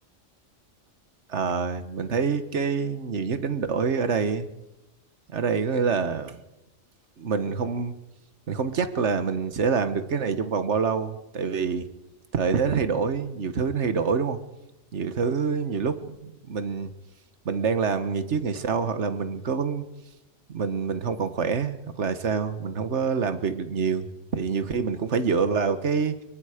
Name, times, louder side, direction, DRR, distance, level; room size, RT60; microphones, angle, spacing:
voice 1, 1.3-4.5 5.3-6.4 7.2-7.9 8.5-11.9 12.3-14.4 14.9-16.9 17.4-19.9 20.5-26.2, right 5 dB, 70° right, 11 dB, 1.6 m, -26 dB
24.5 x 22.5 x 5.1 m, 0.94 s
omnidirectional pair, 1.2 m